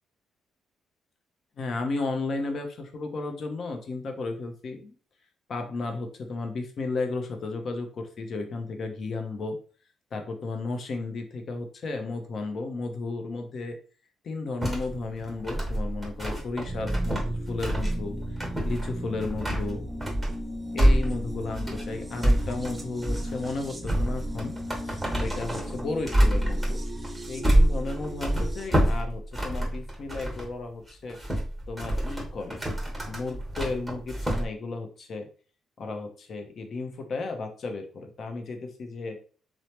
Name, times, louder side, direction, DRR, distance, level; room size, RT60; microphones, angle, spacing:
voice 1, 1.6-5.0 5.5-9.6 10.1-13.8 14.2-19.9 20.7-24.5 24.8-26.8 27.3-31.2 31.7-32.6 33.1-35.3 35.8-39.2, left 3 dB, 55° left, 5 dB, 0.6 m, -34 dB
sound 1, 14.6-30.5 30.9-34.5, right 1 dB, 5° right, 1.1 m, -27 dB
sound 2, 16.7-28.7, equal, 25° right, 0.5 m, -37 dB
3.1 x 2.0 x 2.8 m, 0.40 s
cardioid pair, 90°, 0 cm